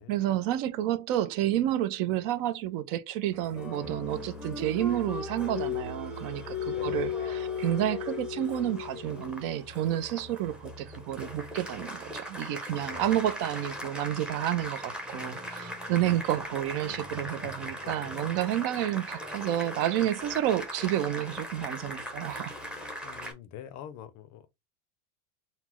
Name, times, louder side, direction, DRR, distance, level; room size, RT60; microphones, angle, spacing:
voice 1, 0.1-22.5, right 12 dB, 50° right, 0.5 m, -30 dB
Applause, 3.3-23.3, left 3 dB, ahead, 0.6 m, -38 dB
voice 2, 6.7-7.3 12.7-13.3 17.2-18.1 23.0-24.6, left 9 dB, 40° left, 0.5 m, -46 dB
4.0 x 2.1 x 4.3 m
supercardioid pair, 140°, 44 cm